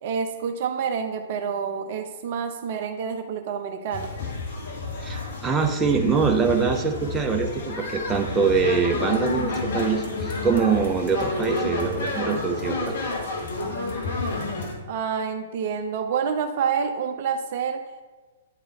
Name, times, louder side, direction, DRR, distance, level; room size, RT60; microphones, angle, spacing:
voice 1, 0.0-4.1 14.9-17.8, right 6 dB, 50° right, 6 dB, 0.6 m, -28 dB
sound 1, 3.9-14.7, left 2 dB, 60° left, 1.3 m, -30 dB
voice 2, 5.0-13.0, right 5 dB, 15° right, 2 dB, 0.7 m, -24 dB
8.9 x 3.9 x 4.2 m, 1.3 s
figure-of-eight pair, 110°, 0 cm